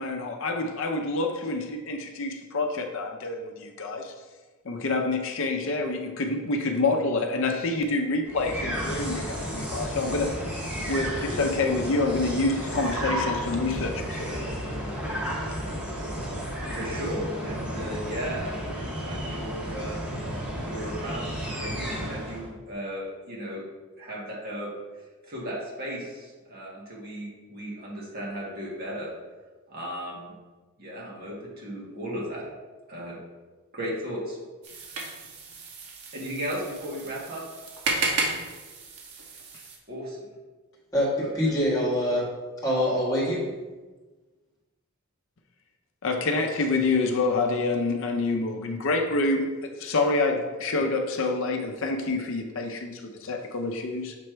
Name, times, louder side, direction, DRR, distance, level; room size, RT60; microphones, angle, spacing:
voice 1, 0.0-4.1 4.6-10.3 10.9-14.5 46.0-54.2, left 3 dB, 60° left, 3 dB, 0.6 m, -27 dB
sound 1, 8.2-22.5, equal, 5° right, 1.4 m, -32 dB
voice 2, 16.7-20.0 20.6-23.6 24.0-24.7 25.3-29.1 29.7-30.3 30.8-32.4 32.9-33.2 33.7-34.4 34.7-34.8 36.1-37.4 39.9-40.2 41.2-41.3, equal, 45° right, -4 dB, 1.6 m, -35 dB
sound 2, 34.6-39.8, right 3 dB, 85° right, 1.1 m, -33 dB
voice 3, 40.9-42.3 42.6-43.4, equal, 15° left, -6 dB, 1.6 m, -24 dB
6.8 x 3.2 x 4.5 m, 1.3 s
head